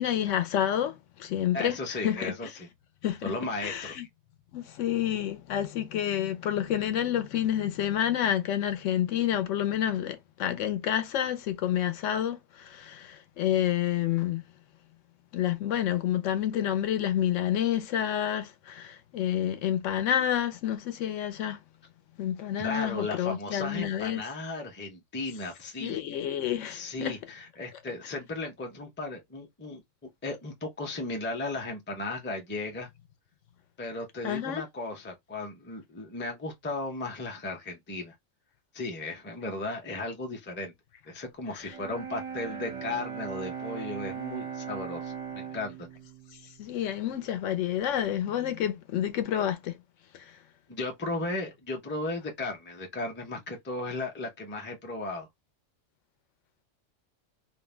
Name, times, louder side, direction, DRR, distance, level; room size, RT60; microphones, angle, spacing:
voice 1, 0.0-2.5 3.0-3.2 3.6-4.0 4.5-14.4 15.3-21.6 22.2-24.2 25.8-27.1 34.2-34.6 41.6-41.7 46.6-49.7 50.1-50.2, left 10 dB, 75° left, 0.9 m, -29 dB
voice 2, 1.5-2.7 3.2-3.9 22.6-26.0 26.7-29.8 30.2-32.9 33.8-38.1 38.7-40.7 41.1-45.9 50.7-55.3, left 2 dB, 15° left, 0.4 m, -35 dB
Bowed string instrument, 41.6-47.6, right 7 dB, 40° right, 0.5 m, -39 dB
2.5 x 2.1 x 3.1 m
omnidirectional pair, 1.3 m